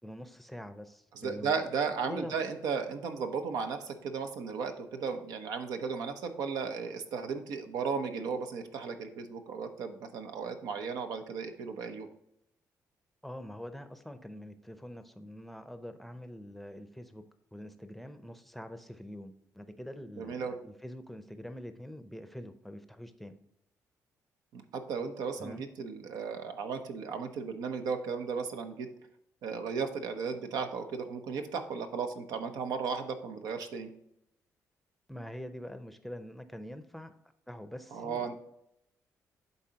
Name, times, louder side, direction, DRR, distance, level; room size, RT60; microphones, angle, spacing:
voice 1, 0.0-1.5 2.1-2.4 13.2-17.2 17.5-23.4 25.4-25.6 35.1-37.1 37.5-38.4, equal, ahead, 9 dB, 0.6 m, -45 dB
voice 2, 1.1-12.1 20.2-20.6 24.5-28.9 29.4-33.9 37.9-38.3, right 5 dB, 85° right, 6 dB, 0.8 m, -35 dB
11.0 x 4.0 x 2.9 m, 0.79 s
cardioid pair, 100°, 6 cm